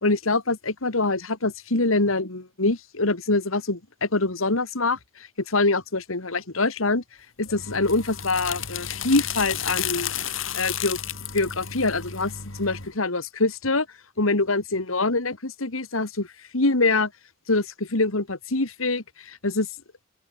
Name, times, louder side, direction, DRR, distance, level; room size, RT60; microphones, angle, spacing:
voice 1, 0.0-5.0 5.5-7.0 7.4-10.1 10.5-11.0 11.3-12.3 12.6-13.9 14.2-16.3 16.5-17.1 17.5-19.7, left 3 dB, 85° left, 2.3 m, -24 dB
sound 1, 7.4-12.9, left 9 dB, 70° left, 6.0 m, -32 dB
open air
head